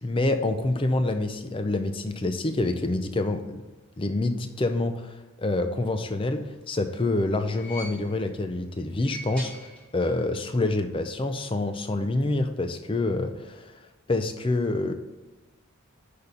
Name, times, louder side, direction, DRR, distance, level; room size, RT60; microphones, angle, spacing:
voice 1, 0.0-3.6 4.0-13.8 14.1-14.9, left 2 dB, 25° left, 8 dB, 0.5 m, -27 dB
sound 1, 6.5-8.4 8.9-10.3 10.5-10.6 11.7-11.8, equal, 5° left, 1.3 m, -44 dB
6.3 x 5.1 x 5.5 m, 1.2 s
head